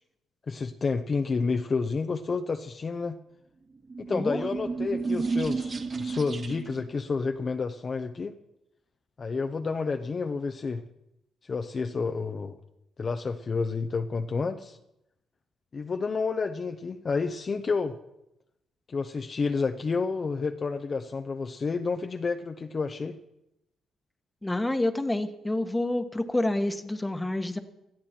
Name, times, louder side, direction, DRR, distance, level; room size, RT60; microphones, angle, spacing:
voice 1, 0.5-3.2 4.0-8.4 9.2-10.8 11.4-12.6 13.0-14.8 15.7-18.0 18.9-23.2, left 4 dB, 40° left, 6 dB, 0.8 m, -30 dB
sound 1, 3.8-6.9, right 4 dB, 40° right, 1.8 m, -31 dB
voice 2, 24.4-27.6, left 1 dB, 10° left, 9 dB, 1.3 m, -28 dB
18.0 x 13.0 x 4.4 m, 0.86 s
cardioid pair, 90°, 0 cm